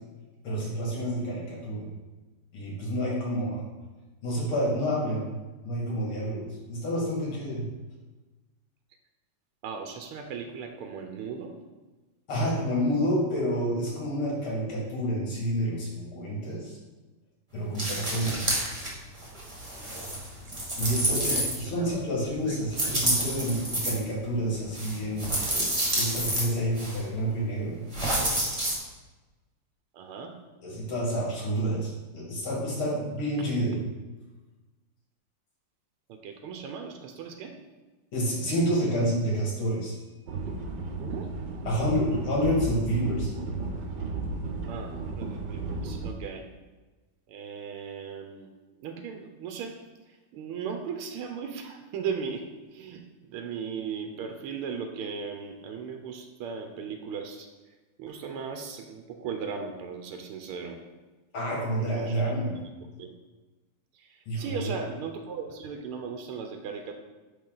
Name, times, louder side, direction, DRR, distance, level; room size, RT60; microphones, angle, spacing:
voice 1, 0.4-1.9 2.5-3.6 4.2-5.3 5.6-7.6 12.3-16.8 17.5-18.5 20.8-27.8 30.6-33.8 38.1-40.0 41.7-43.3 61.3-62.5 64.3-64.7, equal, 75° left, -4 dB, 2.9 m, -29 dB
voice 2, 9.6-11.5 21.1-23.0 29.9-30.3 36.1-37.5 41.0-41.3 44.7-46.4 47.3-48.5 48.8-49.8 50.3-52.5 52.7-53.0 53.3-57.5 58.0-60.8 61.8-62.2 63.0-63.1 63.9-66.9, right 6 dB, 85° right, 5 dB, 1.6 m, -37 dB
sound 1, 17.7-18.9 19.2-21.9 22.7-23.9 24.7-26.4 26.8-27.0 27.9-28.8, right 1 dB, 15° right, 1.4 m, -29 dB
sound 2, 40.3-46.1, right 3 dB, 60° right, 1.3 m, -34 dB
9.5 x 3.9 x 3.9 m, 1.2 s
omnidirectional pair, 2.3 m